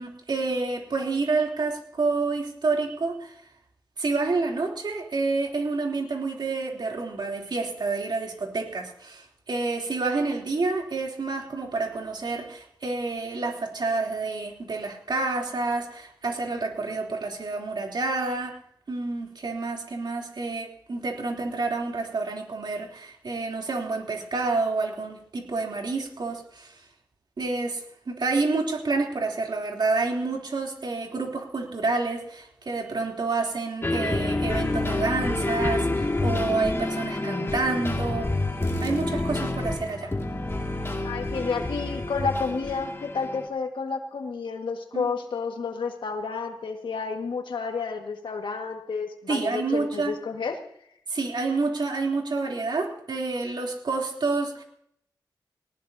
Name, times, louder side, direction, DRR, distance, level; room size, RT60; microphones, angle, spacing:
voice 1, 0.0-3.4 4.0-18.6 18.9-26.7 27.4-38.3 38.8-40.1 44.9-45.1 49.3-50.1 51.1-54.6, right 3 dB, 65° right, 0 dB, 3.4 m, -28 dB
sound 1, 33.8-43.5, left 2 dB, 30° left, 2.4 m, -28 dB
voice 2, 41.0-50.6, left 5 dB, 85° left, 4 dB, 1.9 m, -30 dB
19.0 x 18.5 x 2.8 m, 0.70 s
cardioid pair, 65°, 8 cm